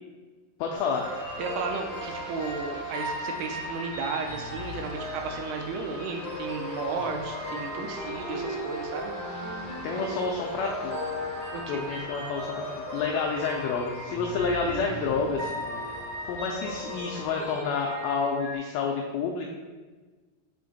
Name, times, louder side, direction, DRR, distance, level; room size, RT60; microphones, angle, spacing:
voice 1, 0.6-1.1 9.8-11.0 11.7-15.8 16.3-19.4, left 5 dB, 85° left, 1 dB, 2.1 m, -29 dB
sound 1, 0.7-18.5, equal, 40° right, 1.5 m, -36 dB
sound 2, 1.0-17.6, left 2 dB, 65° left, 2.0 m, -44 dB
voice 2, 1.4-9.1 11.5-11.9, right 5 dB, 80° right, 3 dB, 2.5 m, -34 dB
6.4 x 4.3 x 4.0 m, 1.3 s
omnidirectional pair, 4.9 m